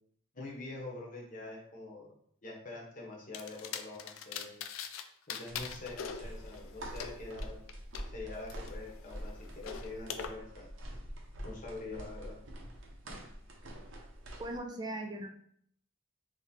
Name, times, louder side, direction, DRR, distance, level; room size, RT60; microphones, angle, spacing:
voice 1, 0.3-2.1 2.4-4.6 5.3-7.6 8.1-10.7 11.4-12.4, left 2 dB, 40° left, -2 dB, 0.9 m, -45 dB
sound 1, 3.3-5.0 5.3-8.0 8.5-10.3, left 7 dB, 85° left, 0.4 m, -43 dB
footsteps and stairs wood, 5.5-14.6, equal, 70° right, 0.7 m, -46 dB
voice 2, 14.4-15.3, right 1 dB, 20° right, 3 dB, 0.4 m, -39 dB
3.2 x 2.8 x 3.6 m, 0.64 s
head